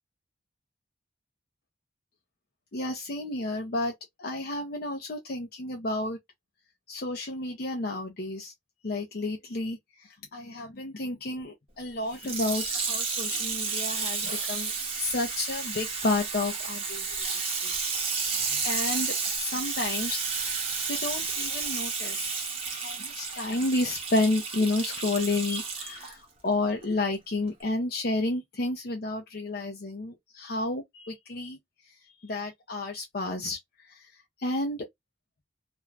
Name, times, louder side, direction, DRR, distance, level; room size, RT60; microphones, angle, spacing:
voice 1, 2.7-6.2 6.9-8.5 8.8-14.7 15.0-17.8 18.0-20.2 20.5-22.4 22.7-31.6 31.9-34.8, left 2 dB, 55° left, 0.6 m, -31 dB
Water tap faucet / Sink (filling or washing), 12.1-26.1 26.8-26.9, right 5 dB, 35° right, 0.9 m, -32 dB
2.5 x 2.2 x 3.1 m
head